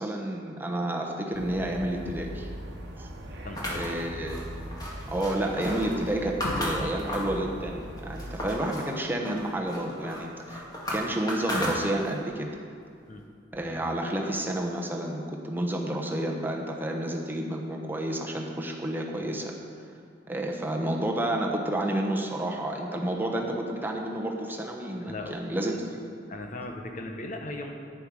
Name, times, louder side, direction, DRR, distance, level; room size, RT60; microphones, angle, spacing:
voice 1, 0.0-2.5 3.0-3.1 3.7-4.4 5.1-10.6 10.9-12.5 13.5-19.5 20.3-26.0, right 1 dB, 10° right, 0 dB, 1.0 m, -30 dB
sound 1, 1.3-8.6, equal, 65° right, 1.1 m, -40 dB
voice 2, 3.4-4.0 13.1-13.2 25.0-25.4 26.3-27.7, left 2 dB, 45° left, 3 dB, 1.0 m, -38 dB
sound 2, 3.6-7.4 7.8-8.9 9.2-12.3, left 1 dB, 20° left, 1.9 m, -34 dB
Drum, 6.4-8.6, left 1 dB, 65° left, 1.4 m, -39 dB
10.5 x 9.6 x 4.9 m, 2.3 s
head